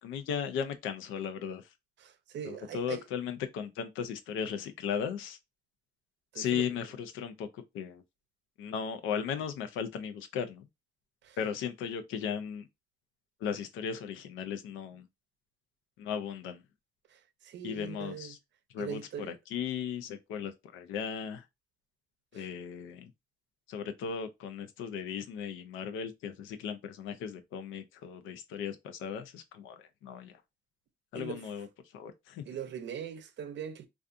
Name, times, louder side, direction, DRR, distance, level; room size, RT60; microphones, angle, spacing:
voice 1, 0.0-1.6 2.4-5.4 6.3-8.0 8.6-10.6 11.4-12.7 13.4-15.1 16.0-16.6 17.6-18.4 18.7-21.4 22.3-23.1 23.7-30.3 31.1-31.7 31.9-32.5, left 7 dB, 90° left, 0.4 m, -36 dB
voice 2, 2.0-3.0 6.3-6.6 11.2-11.4 17.1-17.2 17.4-18.4 18.8-19.3 22.3-22.5 31.1-31.4 32.5-33.9, right 8 dB, 65° right, 0.5 m, -41 dB
2.5 x 2.3 x 2.4 m
cardioid pair, 90°, 20 cm